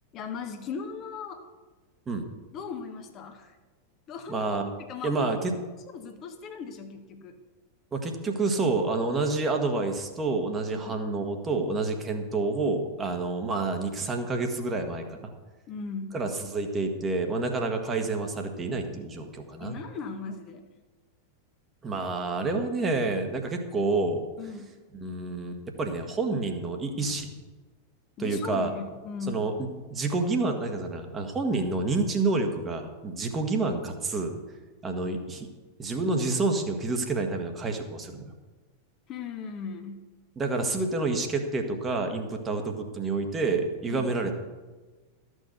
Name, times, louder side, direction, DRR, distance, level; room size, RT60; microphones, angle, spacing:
voice 1, 0.1-1.5 2.5-3.6 4.1-4.4 4.8-5.4 5.9-7.4 10.7-11.0 15.7-16.2 19.6-20.7 24.4-24.7 28.2-29.5 39.1-40.1 43.9-44.1, left 5 dB, 35° left, 6 dB, 1.0 m, -38 dB
voice 2, 4.3-4.7 5.0-5.5 7.9-15.3 16.1-19.8 21.8-24.2 24.9-27.3 28.2-28.7 29.3-29.5 29.9-34.4 34.8-35.5 35.8-38.2 40.4-44.4, right 3 dB, 20° right, 4 dB, 1.5 m, -28 dB
13.0 x 6.4 x 6.5 m, 1.3 s
figure-of-eight pair, 90°, 0 cm